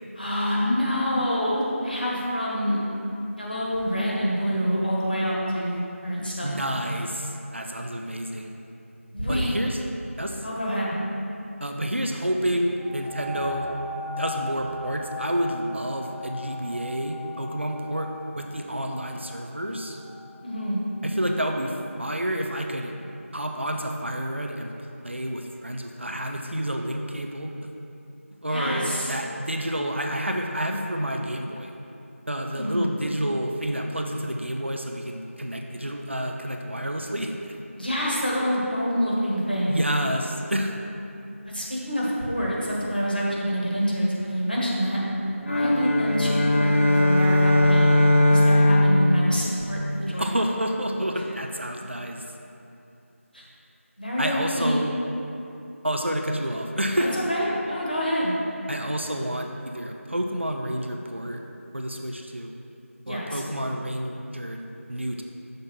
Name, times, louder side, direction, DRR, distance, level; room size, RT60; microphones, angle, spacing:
voice 1, 0.2-2.8 3.4-6.5 9.1-9.5 10.4-10.9 20.4-20.8 28.5-29.1 32.5-32.9 37.8-39.9 41.5-45.0 45.5-47.9 48.3-50.2 53.3-53.4 54.0-54.8 57.0-58.3 63.0-63.4, equal, 40° left, -5 dB, 1.3 m, -26 dB
voice 2, 6.4-8.5 9.3-9.8 10.2-10.4 11.6-13.7 14.2-20.0 21.0-22.9 23.3-24.7 25.0-27.5 28.4-31.7 32.3-37.3 39.7-40.7 50.2-52.2 54.2-54.9 55.8-57.1 58.7-61.4 61.7-62.5 63.1-65.2, equal, 55° right, 2 dB, 0.5 m, -29 dB
sound 1, 12.8-22.0 22.7-22.8, left 2 dB, 90° right, 1.4 m, -39 dB
sound 2, 45.4-50.1, left 1 dB, 65° left, 0.6 m, -20 dB
6.5 x 3.5 x 5.9 m, 2.7 s
figure-of-eight pair, 180°, 8 cm